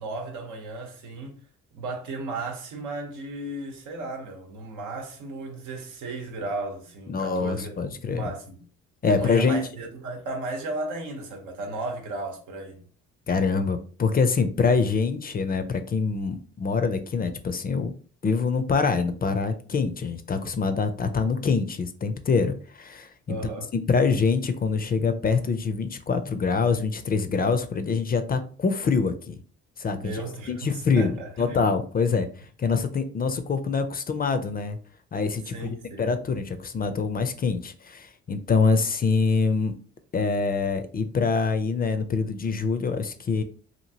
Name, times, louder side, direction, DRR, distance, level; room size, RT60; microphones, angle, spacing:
voice 1, 0.0-1.4 1.7-7.7 8.0-8.6 9.0-12.8 23.3-23.7 29.9-31.7 35.5-36.1, right 2 dB, 90° right, 0.9 m, -35 dB
voice 2, 7.1-8.3 9.0-9.6 13.3-17.9 18.2-23.5 23.9-29.4 29.8-30.2 30.5-32.3 32.6-34.8 35.1-39.8 40.1-43.4, left 4 dB, 30° left, 0.4 m, -25 dB
2.9 x 2.5 x 2.7 m
cardioid pair, 90°, 30 cm